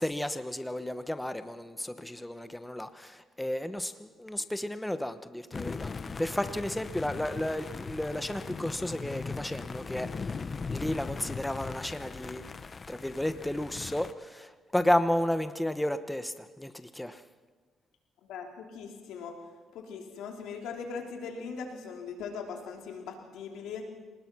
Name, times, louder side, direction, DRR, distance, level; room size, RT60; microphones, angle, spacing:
voice 1, 0.0-5.9 6.2-10.4 10.7-12.4 12.9-17.2, left 1 dB, 5° left, 10 dB, 1.0 m, -32 dB
sound 1, 5.5-14.1, left 4 dB, 35° left, 0.9 m, -39 dB
voice 2, 18.2-19.3 19.7-23.8, left 5 dB, 85° left, 2 dB, 3.2 m, -40 dB
26.0 x 19.0 x 6.2 m, 1.4 s
cardioid pair, 85°, 0 cm